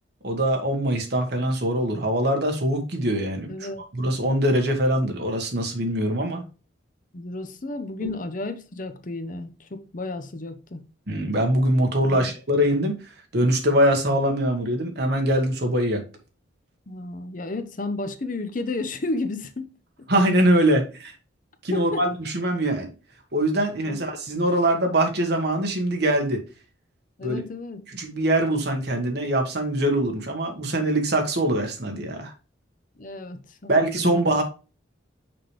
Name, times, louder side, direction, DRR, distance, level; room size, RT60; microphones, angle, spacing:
voice 1, 0.2-3.5 3.9-6.4 8.0-8.1 11.1-13.0 13.3-16.0 20.1-21.1 21.6-22.9 23.3-26.4 27.2-27.4 27.9-32.3 33.7-34.4, right 1 dB, 55° right, 1.5 m, -23 dB
voice 2, 3.5-3.8 7.1-10.8 12.1-12.3 16.9-19.7 20.0-20.1 21.7-22.1 23.8-24.0 27.2-27.8 33.0-34.2, left 2 dB, 40° left, 0.7 m, -32 dB
6.0 x 5.0 x 3.2 m
head